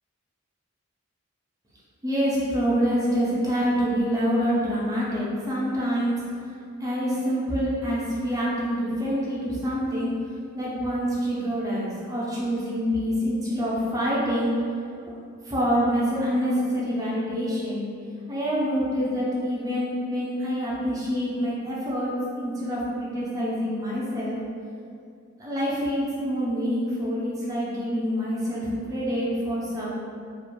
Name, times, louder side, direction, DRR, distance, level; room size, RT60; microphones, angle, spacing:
voice 1, 2.0-6.2 6.8-10.1 10.5-14.5 15.4-17.8 18.3-24.4 25.4-30.0, equal, 15° right, -7 dB, 0.4 m, -26 dB
2.4 x 2.1 x 3.0 m, 2.4 s
head